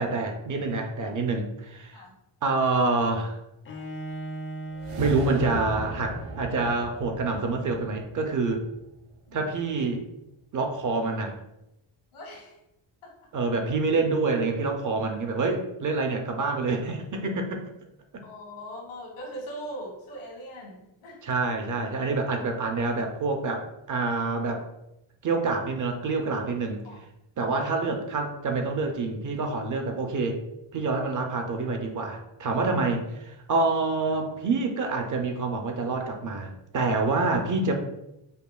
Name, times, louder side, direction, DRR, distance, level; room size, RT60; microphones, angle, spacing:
voice 1, 0.0-2.0 2.4-3.4 5.0-8.7 9.3-10.0 10.5-11.4 13.3-17.6 21.2-24.6 25.2-26.8 27.4-30.4 30.7-37.7, right 3 dB, 40° right, 4 dB, 0.5 m, -27 dB
Bowed string instrument, 3.6-6.6, right 2 dB, 25° left, 0.4 m, -39 dB
sound 1, 4.7-9.1, right 1 dB, 85° right, 0.7 m, -37 dB
voice 2, 12.1-12.6 13.0-13.1 18.2-21.2 26.8-27.0 27.8-28.0, equal, 85° left, -1 dB, 1.3 m, -40 dB
5.2 x 2.2 x 2.3 m, 0.88 s
cardioid pair, 110°, 49 cm